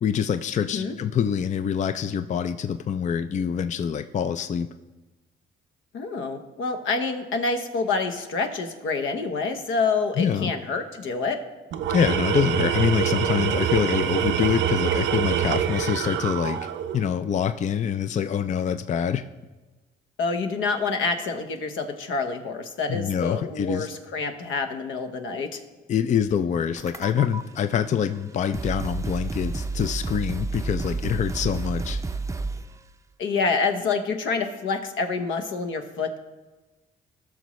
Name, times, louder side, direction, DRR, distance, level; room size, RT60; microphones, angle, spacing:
voice 1, 0.0-4.7 10.2-10.5 11.9-16.6 16.9-19.2 22.9-23.9 25.9-32.0, left 8 dB, 40° left, 10 dB, 0.4 m, -25 dB
voice 2, 5.9-11.4 20.2-25.6 33.2-36.2, left 4 dB, 80° left, 6 dB, 1.1 m, -27 dB
Tools, 11.7-17.1, right 9 dB, 70° right, 0.6 m, -25 dB
sound 1, 26.8-27.4 28.2-28.3 28.5-32.7, right 3 dB, 15° right, 0.5 m, -30 dB
18.0 x 6.1 x 3.1 m, 1.2 s
cardioid pair, 90°, 20 cm